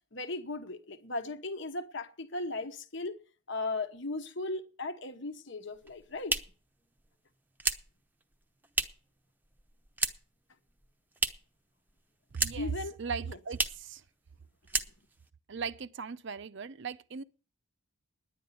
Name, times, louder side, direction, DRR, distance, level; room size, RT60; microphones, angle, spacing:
voice 1, 0.1-3.1 3.5-6.4 12.6-13.4, left 2 dB, 55° left, 1.2 m, -37 dB
sound 1, 5.7-9.2 9.4-10.4 10.7-11.6 11.9-12.8 13.1-13.2 13.5-13.9 14.3-14.4 14.7-15.3, right 3 dB, 10° right, 0.7 m, -34 dB
voice 2, 12.3-12.7 13.0-14.0 15.5-17.2, right 5 dB, 55° right, 0.5 m, -38 dB
10.5 x 9.4 x 6.8 m
head